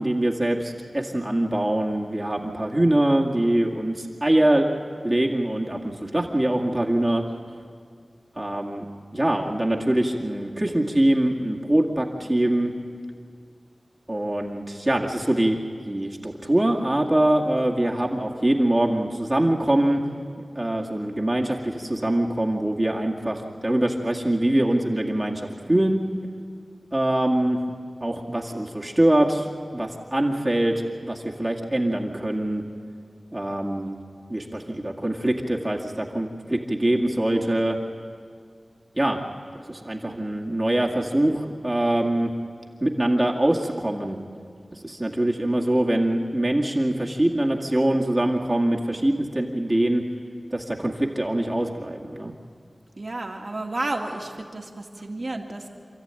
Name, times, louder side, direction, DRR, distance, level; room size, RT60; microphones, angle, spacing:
voice 1, 0.0-4.7 5.0-7.2 8.4-8.9 9.1-12.7 14.1-15.6 15.9-20.0 20.6-26.0 26.9-27.6 28.0-29.5 29.7-32.6 33.3-34.0 34.3-37.8 39.0-39.2 39.7-42.3 42.8-44.2 44.7-50.0 50.5-52.3, right 1 dB, 25° right, -1 dB, 2.1 m, -23 dB
voice 2, 53.0-55.7, right 2 dB, 50° right, 2 dB, 2.3 m, -31 dB
28.0 x 13.5 x 9.0 m, 2.1 s
wide cardioid pair, 60°, 0 cm